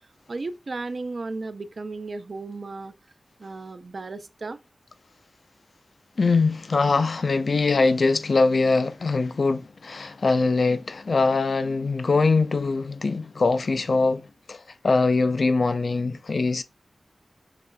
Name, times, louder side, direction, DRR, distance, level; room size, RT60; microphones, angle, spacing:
voice 1, 0.3-2.9 3.4-4.6, right 3 dB, 65° right, 0.4 m, -34 dB
voice 2, 6.2-16.6, left 3 dB, 70° left, 0.3 m, -22 dB
5.8 x 3.0 x 2.2 m
wide cardioid pair, 55°, 0 cm